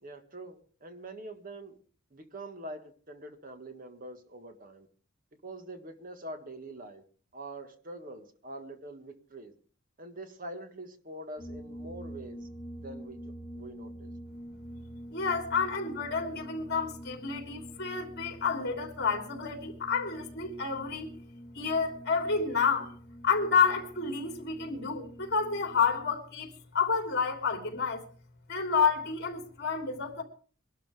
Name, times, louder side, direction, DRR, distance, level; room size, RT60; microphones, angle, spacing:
voice 1, 0.0-1.7 2.1-4.9 5.4-7.0 7.3-9.5 10.0-12.4 12.7-13.2 13.5-14.1, right 1 dB, 40° right, 1.7 m, -44 dB
sound 1, 11.4-26.1, equal, 10° left, 2.3 m, -46 dB
voice 2, 15.1-21.1 21.5-22.9 23.2-28.0 28.5-30.2, left 5 dB, 50° left, 3.2 m, -29 dB
23.5 x 12.5 x 3.5 m
head